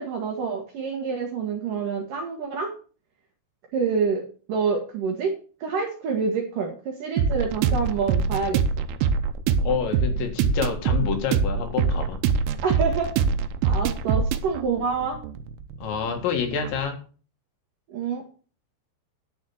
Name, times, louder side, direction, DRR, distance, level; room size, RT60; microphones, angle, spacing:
voice 1, 0.0-2.7 3.7-8.6 12.6-13.1 13.6-15.2 17.9-18.2, right 5 dB, 60° right, 2 dB, 2.5 m, -27 dB
sound 1, 7.2-16.8, right 6 dB, 85° right, 3.3 m, -24 dB
voice 2, 9.6-12.2 15.8-17.0, left 7 dB, 70° left, 5 dB, 4.0 m, -28 dB
11.0 x 6.3 x 7.0 m, 0.40 s
omnidirectional pair, 5.5 m